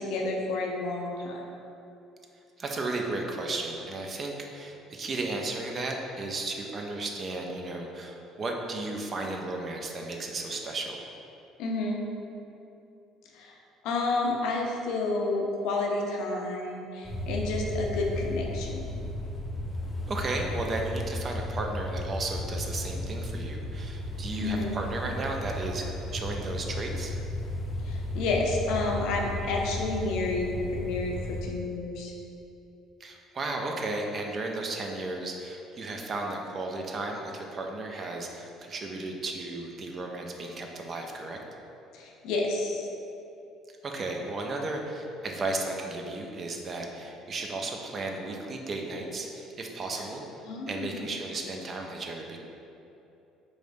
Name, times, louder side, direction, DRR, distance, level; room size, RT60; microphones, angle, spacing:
voice 1, 0.0-1.4 11.6-12.1 13.3-13.6 13.8-18.8 24.4-24.7 27.8-32.1 41.9-42.9 49.9-50.0 50.5-51.1, left 2 dB, 70° left, 0 dB, 0.5 m, -30 dB
voice 2, 2.6-11.0 20.1-25.9 26.1-27.1 33.0-41.4 43.8-52.4, right 2 dB, 40° right, 2 dB, 0.5 m, -34 dB
sound 1, 17.0-31.4, left 1 dB, 15° left, 0.6 m, -34 dB
4.0 x 3.2 x 2.6 m, 2.9 s
hypercardioid pair, 65°, 0 cm